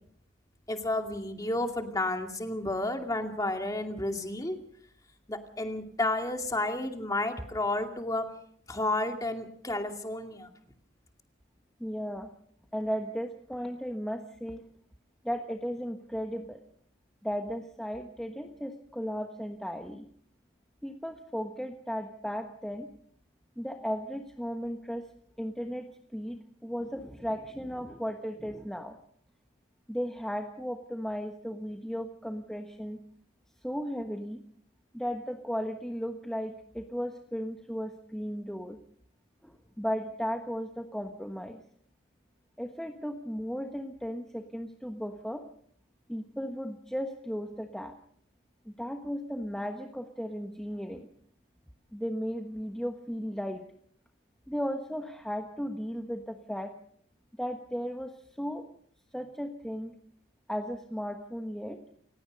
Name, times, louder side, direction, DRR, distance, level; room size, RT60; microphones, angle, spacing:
voice 1, 0.7-4.6 5.3-8.2 8.7-10.5, left 2 dB, 20° left, 4 dB, 2.4 m, -31 dB
voice 2, 11.8-12.3 12.7-14.6 15.2-16.6 17.2-20.1 20.8-22.9 23.6-25.0 25.4-29.0 29.9-33.0 33.6-34.4 34.9-38.8 39.4-41.6 42.6-45.4 46.1-47.9 48.6-51.1 51.9-53.6 54.5-56.7 57.4-58.1 58.4-58.6 59.1-59.9 60.5-61.8, equal, 5° left, 3 dB, 1.3 m, -35 dB
29.5 x 16.5 x 5.4 m, 0.63 s
head